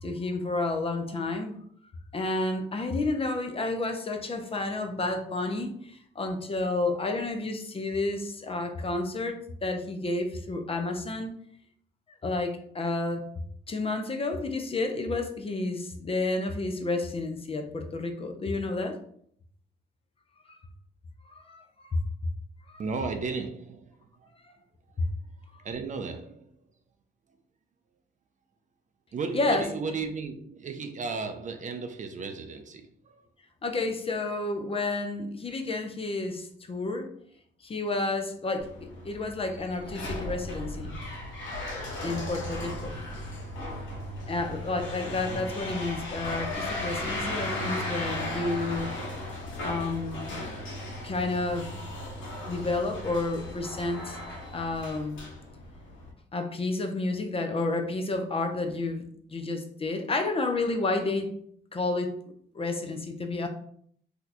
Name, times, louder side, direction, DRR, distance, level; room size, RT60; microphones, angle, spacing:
voice 1, 0.0-1.5 2.1-11.3 12.2-13.2 13.7-19.0 20.5-20.6 21.3-22.0 22.7-22.8 29.3-29.7 33.6-37.1 37.6-41.0 42.0-43.0 44.3-48.9 49.6-50.4 51.0-51.8 52.5-54.2 54.5-55.2 56.3-61.3 61.7-62.1 62.5-63.5, left 2 dB, 30° left, 0.5 m, -30 dB
voice 2, 22.8-24.3 25.6-26.6 29.1-33.2, right 4 dB, 40° right, 0.4 m, -35 dB
sound 1, 38.6-56.1, left 1 dB, 75° left, 1.1 m, -36 dB
2.8 x 2.2 x 4.0 m
cardioid pair, 90°, 20 cm